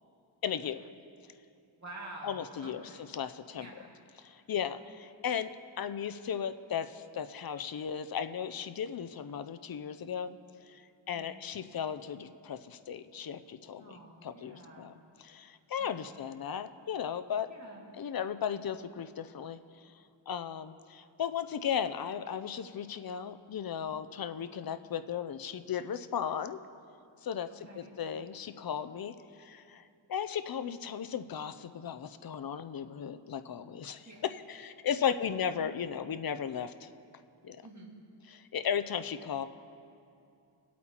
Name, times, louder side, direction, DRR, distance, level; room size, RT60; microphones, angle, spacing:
voice 1, 0.4-0.9 2.2-3.7 4.2-5.5 5.8-10.4 10.7-14.9 15.2-17.5 17.9-19.9 20.3-26.6 27.2-29.1 29.4-29.8 30.1-36.9 37.4-37.6 38.3-39.5, left 8 dB, 50° left, 10 dB, 0.5 m, -36 dB
voice 2, 1.8-3.0 3.5-3.9 11.1-11.5 13.8-15.0 15.8-16.2 17.5-18.0 27.6-27.9 34.0-34.2 37.6-38.0, right 2 dB, 35° right, -3 dB, 2.1 m, -49 dB
20.5 x 8.4 x 2.9 m, 2.6 s
wide cardioid pair, 85°, 47 cm